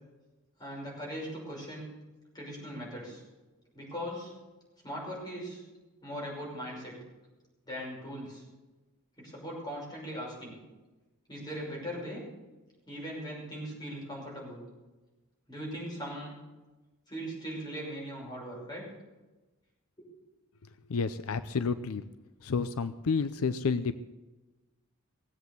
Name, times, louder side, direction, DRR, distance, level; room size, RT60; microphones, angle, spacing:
voice 1, 0.6-1.9 2.3-3.2 3.7-4.3 4.8-5.6 6.0-6.9 7.6-8.4 9.2-10.6 11.3-12.2 12.9-14.6 15.5-16.3 17.1-18.9, equal, 20° left, -3 dB, 5.8 m, -39 dB
voice 2, 20.9-22.0 22.4-24.0, left 5 dB, 80° left, 12 dB, 0.5 m, -30 dB
18.5 x 8.0 x 7.0 m, 1.2 s
head